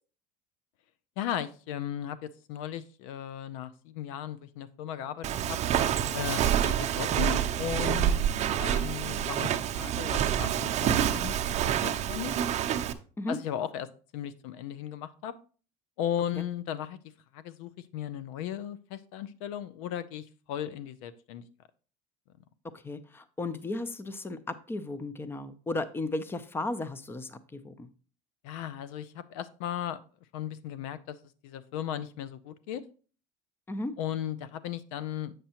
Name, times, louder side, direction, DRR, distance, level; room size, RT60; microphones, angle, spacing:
voice 1, 1.2-5.6 6.1-8.3 8.6-11.3 11.8-12.3 13.3-15.3 16.0-17.0 17.3-21.4 28.4-30.0 30.3-31.2 31.4-32.8 34.0-35.3, left 10 dB, 80° left, 15 dB, 0.5 m, -36 dB
Walk footsteps, 5.2-12.9, right 10 dB, 40° right, 0.6 m, -27 dB
voice 2, 22.7-24.4 24.7-27.9 33.7-33.9, left 2 dB, 15° left, 14 dB, 0.5 m, -35 dB
7.6 x 6.6 x 2.9 m, 0.40 s
supercardioid pair, 105°, 17 cm